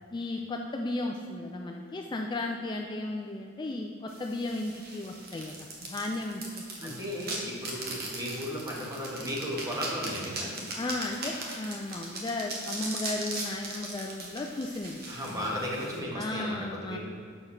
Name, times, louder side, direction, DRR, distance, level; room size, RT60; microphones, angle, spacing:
voice 1, 0.1-5.6 5.8-7.0 10.8-15.0 15.3-15.5 16.2-17.0, left 2 dB, 20° left, 2 dB, 0.3 m, -35 dB
sound 1, 4.1-16.0, right 2 dB, 50° right, 1.3 m, -39 dB
voice 2, 6.8-10.6 15.1-17.0, equal, 15° right, -4 dB, 1.4 m, -35 dB
6.4 x 4.8 x 5.6 m, 2.3 s
head